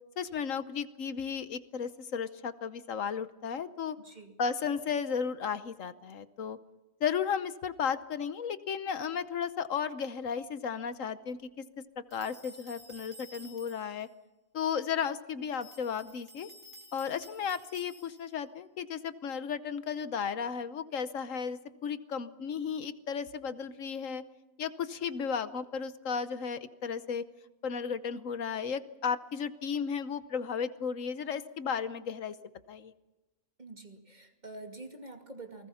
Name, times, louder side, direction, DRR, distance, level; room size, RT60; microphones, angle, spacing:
voice 1, 0.2-4.0 4.4-6.6 7.0-11.5 12.1-14.1 14.5-16.5 16.9-24.2 24.6-27.2 27.6-32.3 32.7-32.9, left 7 dB, 70° left, 13 dB, 1.3 m, -34 dB
voice 2, 4.0-4.4 33.6-35.7, right 2 dB, 30° right, 4 dB, 2.5 m, -47 dB
sound 1, 12.1-14.1 15.5-18.4, equal, 60° right, 2.6 m, -53 dB
28.5 x 19.5 x 5.7 m, 1.1 s
omnidirectional pair, 1.4 m